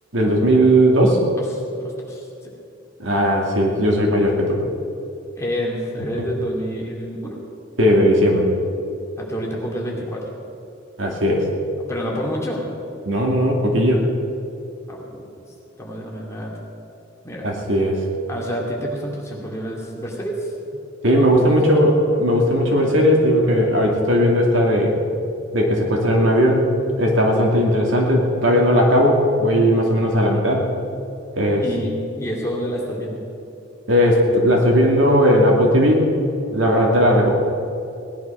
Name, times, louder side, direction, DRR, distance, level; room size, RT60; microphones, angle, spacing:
voice 1, 0.1-1.2 3.0-4.6 7.8-8.5 11.0-11.5 13.1-14.0 17.4-18.0 21.0-25.0 25.5-30.7 31.4-31.6 33.9-36.1 36.5-37.3, equal, 75° right, 0 dB, 2.7 m, -17 dB
voice 2, 1.4-2.5 5.4-7.4 9.2-10.2 11.9-12.7 14.9-15.4 15.8-16.5 17.2-17.6 18.3-20.5 21.3-21.4 31.6-33.2, equal, 15° left, -3 dB, 2.6 m, -28 dB
18.0 x 11.0 x 5.9 m, 2.7 s
head